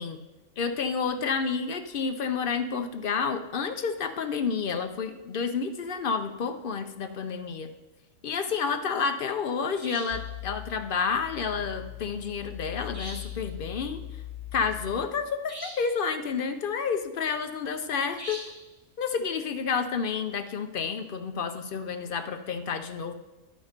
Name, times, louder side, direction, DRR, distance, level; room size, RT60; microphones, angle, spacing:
voice 1, 0.6-7.7 8.2-14.0 14.5-18.4 19.0-23.1, left 5 dB, 55° left, 8 dB, 0.7 m, -30 dB
sound 1, 9.8-10.3 12.9-13.4 15.5-16.0 18.2-18.7, right 1 dB, 25° right, 1.7 m, -41 dB
sound 2, 10.1-15.1, left 14 dB, 85° left, 1.5 m, -40 dB
10.5 x 6.5 x 5.1 m, 1.1 s
omnidirectional pair, 1.4 m